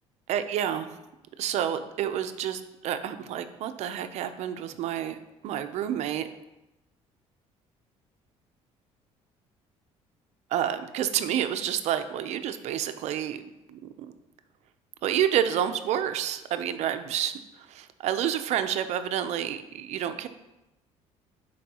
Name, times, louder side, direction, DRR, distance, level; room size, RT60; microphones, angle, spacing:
voice 1, 0.3-0.9 1.4-5.2 5.4-6.3 10.5-13.4 13.7-14.1 15.0-17.3 17.6-20.3, right 10 dB, 65° right, 10 dB, 0.6 m, -29 dB
11.5 x 4.7 x 2.9 m, 0.97 s
cardioid pair, 120°, 12 cm